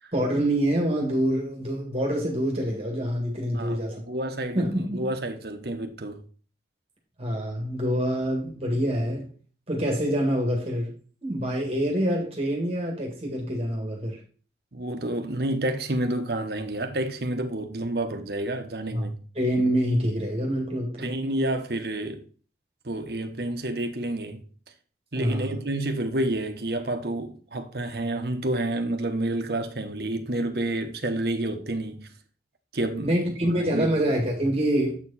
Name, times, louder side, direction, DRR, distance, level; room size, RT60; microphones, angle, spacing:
voice 1, 0.1-4.0 4.6-5.0 7.2-9.3 9.7-10.9 11.2-14.2 18.9-21.2 25.1-25.5 33.0-35.0, equal, 35° right, 1.8 m, -26 dB
voice 2, 3.5-6.2 14.7-19.2 21.0-22.2 22.8-24.4 25.1-32.1 32.7-33.1 33.6-33.9, right 1 dB, 65° right, 1.2 m, -29 dB
8.1 x 4.7 x 4.1 m
head